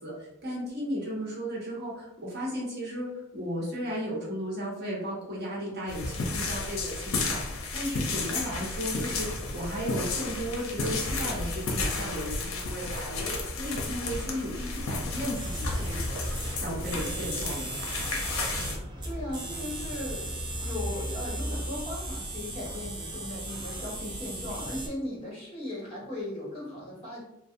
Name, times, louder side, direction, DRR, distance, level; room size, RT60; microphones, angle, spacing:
voice 1, 0.0-3.1 3.3-17.8, equal, 50° right, -6 dB, 1.1 m, -35 dB
sound 1, 5.9-18.8, left 3 dB, 80° left, 0.5 m, -33 dB
sound 2, 15.3-24.9, right 1 dB, 25° right, 0.5 m, -35 dB
voice 2, 19.0-27.2, left 1 dB, 30° left, -5 dB, 1.1 m, -37 dB
2.5 x 2.2 x 2.6 m, 0.86 s
head